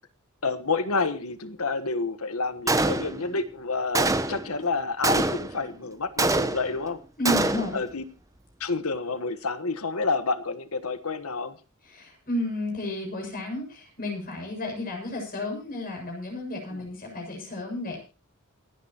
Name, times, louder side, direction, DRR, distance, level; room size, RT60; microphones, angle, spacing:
voice 1, 0.4-7.0 7.7-8.0 8.6-11.5 16.7-16.8, left 4 dB, 80° left, 11 dB, 1.4 m, -29 dB
Gunshot gunfire, 2.7-3.4 3.9-4.5 5.0-5.6 6.2-6.8 7.2-7.8, right 2 dB, 15° right, 0.9 m, -25 dB
voice 2, 7.2-7.8 11.8-18.0, left 1 dB, 45° left, 1 dB, 7.5 m, -32 dB
28.5 x 9.8 x 3.0 m, 0.32 s
head